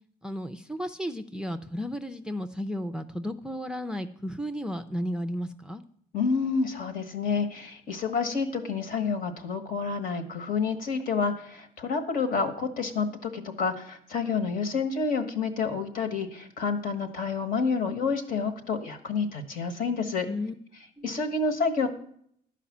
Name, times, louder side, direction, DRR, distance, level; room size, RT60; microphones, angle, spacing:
voice 1, 0.2-5.8 20.3-20.5 21.0-21.1, equal, 5° right, 7 dB, 0.5 m, -33 dB
voice 2, 6.1-20.3 21.0-21.9, left 5 dB, 55° left, 8 dB, 1.4 m, -29 dB
11.5 x 5.0 x 7.2 m, 0.65 s
cardioid pair, 110°, 17 cm